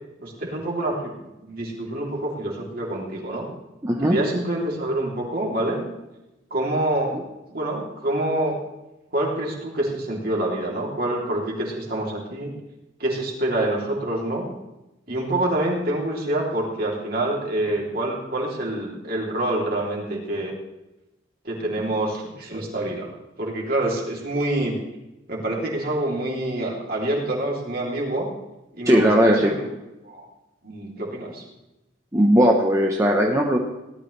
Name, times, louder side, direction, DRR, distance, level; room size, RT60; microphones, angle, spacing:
voice 1, 0.2-1.1 1.4-3.5 4.0-5.8 6.5-7.2 7.5-8.5 9.1-12.5 13.0-14.5 15.1-20.5 21.4-23.1 23.4-24.7 25.3-28.3 28.8-29.7 30.0-30.2 30.6-31.4, right 1 dB, 50° right, -2 dB, 3.3 m, -26 dB
voice 2, 3.8-4.2 7.1-7.2 28.9-29.5 32.1-33.6, equal, 15° right, 0 dB, 1.0 m, -18 dB
18.0 x 12.5 x 3.3 m, 0.96 s
head